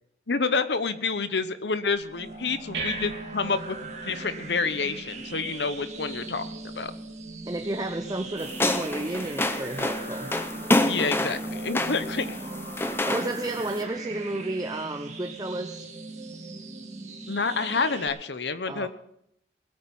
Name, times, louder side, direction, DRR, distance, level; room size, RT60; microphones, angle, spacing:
voice 1, 0.3-3.8 4.0-6.9 10.9-12.4 17.3-18.9, left 4 dB, 85° left, 12 dB, 1.0 m, -28 dB
sound 1, 1.9-12.9, right 3 dB, 85° right, 2.9 m, -44 dB
sound 2, 2.1-18.1, right 2 dB, 40° right, 2.0 m, -39 dB
voice 2, 7.5-10.3 13.0-15.9 18.7-18.9, right 2 dB, 20° right, 6 dB, 0.7 m, -32 dB
sound 3, 8.4-13.8, left 1 dB, 15° left, 0.7 m, -28 dB
20.5 x 8.8 x 5.5 m, 0.75 s
head